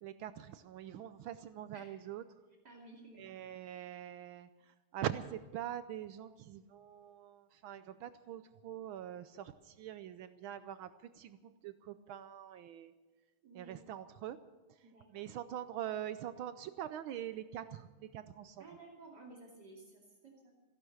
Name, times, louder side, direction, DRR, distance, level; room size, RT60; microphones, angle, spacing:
voice 1, 0.0-2.2 3.2-12.9 13.5-14.4 15.1-18.7, right 11 dB, 75° right, 13 dB, 1.4 m, -44 dB
voice 2, 2.6-3.3 13.4-13.8 14.8-15.3 18.6-20.5, right 2 dB, 50° right, -1 dB, 3.1 m, -55 dB
15.0 x 12.0 x 7.9 m, 1.3 s
omnidirectional pair, 2.4 m